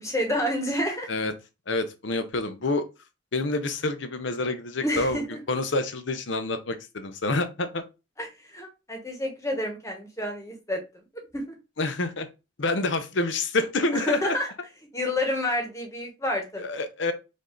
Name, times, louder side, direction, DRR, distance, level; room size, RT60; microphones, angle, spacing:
voice 1, 0.0-1.1 4.8-5.4 8.2-10.8 11.3-11.5 13.9-14.5 14.9-16.6, left 1 dB, 15° left, 1.1 m, -29 dB
voice 2, 1.7-2.8 3.3-7.8 11.8-12.3 12.6-14.4 16.6-17.1, left 2 dB, 70° left, 0.7 m, -27 dB
5.3 x 2.7 x 3.7 m
head